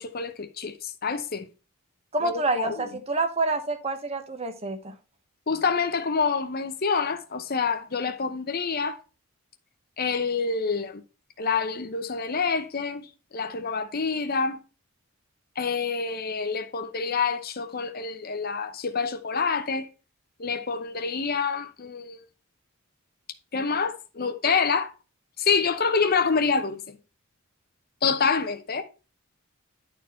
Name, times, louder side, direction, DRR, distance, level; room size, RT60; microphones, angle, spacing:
voice 1, 0.0-1.5 2.2-2.9 5.5-9.0 10.0-11.0 11.4-13.1 13.3-14.6 15.6-19.9 20.4-22.2 23.5-24.9 25.4-27.0 28.0-28.8, left 5 dB, 45° left, 0.7 m, -27 dB
voice 2, 2.1-4.9, right 3 dB, 30° right, 1.0 m, -28 dB
11.0 x 4.4 x 4.4 m
head